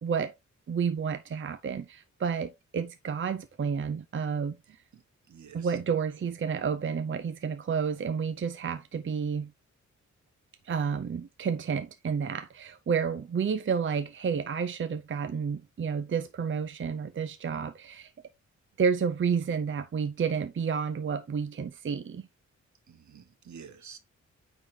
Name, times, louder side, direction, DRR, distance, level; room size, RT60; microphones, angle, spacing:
voice 1, 0.0-0.3 0.7-4.6 5.5-9.5 10.6-18.1 18.8-22.3, right 6 dB, 40° right, 0.6 m, -30 dB
voice 2, 4.7-5.8 22.9-24.0, right 7 dB, 70° right, 1.3 m, -50 dB
8.8 x 3.9 x 2.8 m
wide cardioid pair, 95°, 30 cm